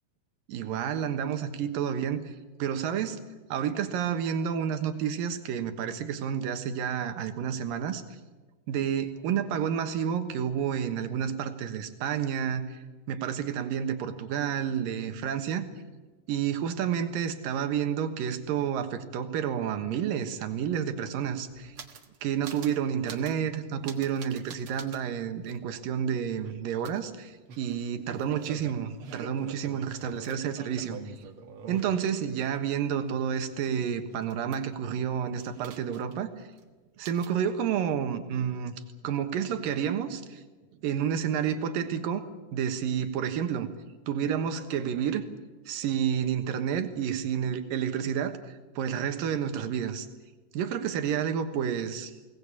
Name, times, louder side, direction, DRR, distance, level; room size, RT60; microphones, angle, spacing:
voice 1, 0.5-2.3 2.6-3.2 3.5-8.0 8.7-12.8 13.1-15.6 16.3-21.8 22.2-31.0 31.7-36.3 37.0-38.8 39.0-40.4 40.8-42.2 42.5-43.7 44.1-45.2 45.7-50.1 50.5-52.1, right 8 dB, 90° right, 8 dB, 3.1 m, -30 dB
sound 1, 20.5-20.6 20.8-22.2 22.4-22.8 23.1-23.4 23.8-25.0 25.5-25.6 26.8-32.6 32.9-34.9 35.4-36.3 36.5-36.6 37.0-37.4, right 5 dB, 50° right, 1.9 m, -46 dB
22.5 x 18.5 x 8.5 m, 1.3 s
omnidirectional pair, 3.8 m